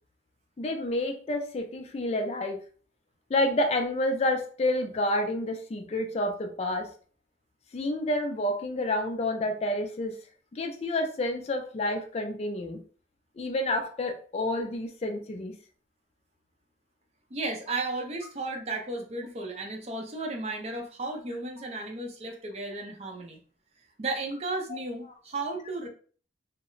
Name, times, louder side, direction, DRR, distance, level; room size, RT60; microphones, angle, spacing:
voice 1, 0.6-2.6 3.3-6.9 7.7-10.2 10.5-12.8 13.4-15.6, left 1 dB, 35° left, 4 dB, 0.3 m, -29 dB
voice 2, 17.3-23.4 24.0-25.9, right 2 dB, 35° right, 2 dB, 0.5 m, -34 dB
2.1 x 2.0 x 3.7 m, 0.42 s
head